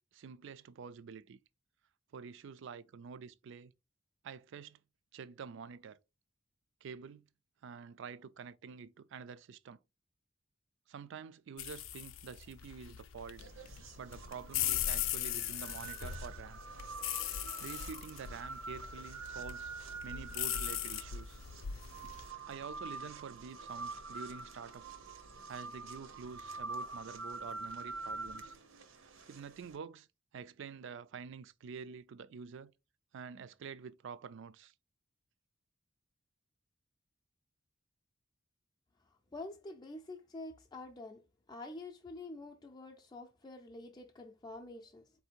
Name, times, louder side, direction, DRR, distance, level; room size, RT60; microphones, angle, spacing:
voice 1, 0.0-1.4 2.1-3.7 4.2-4.8 5.1-6.0 6.8-7.3 7.6-9.8 10.9-13.4 14.0-16.6 17.6-19.7 20.0-21.4 22.5-24.9 25.5-28.6 29.3-30.1 30.3-32.7 33.1-34.7, right 6 dB, 65° right, 0.4 m, -48 dB
sound 1, 11.6-22.3, left 10 dB, 90° left, 0.5 m, -39 dB
sound 2, 13.4-29.8, right 3 dB, 85° right, 0.8 m, -46 dB
voice 2, 39.3-41.2 41.5-45.0, left 2 dB, 20° left, 0.5 m, -47 dB
4.3 x 2.7 x 4.3 m
head